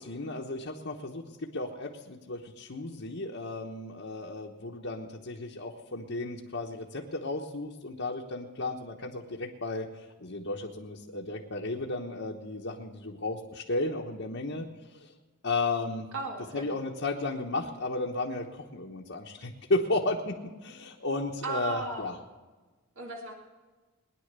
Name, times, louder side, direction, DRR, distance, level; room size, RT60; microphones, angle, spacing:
voice 1, 0.0-15.1 15.4-16.1 16.5-22.1, left 2 dB, 55° left, -2 dB, 1.2 m, -34 dB
voice 2, 16.1-16.7 21.4-22.1 23.0-23.3, right 3 dB, 60° right, 0 dB, 2.0 m, -35 dB
20.0 x 10.5 x 6.8 m, 1.3 s
head